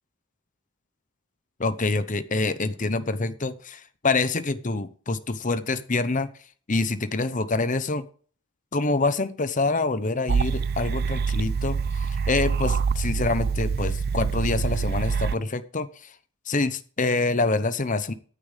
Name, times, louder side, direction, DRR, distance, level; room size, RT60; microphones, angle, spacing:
voice 1, 1.6-6.3 6.7-8.1 8.7-16.1 16.5-18.1, left 3 dB, 40° left, 13 dB, 0.9 m, -26 dB
sound 1, 10.3-15.4, right 5 dB, 50° right, 0.4 m, -25 dB
14.5 x 8.6 x 3.4 m, 0.43 s
head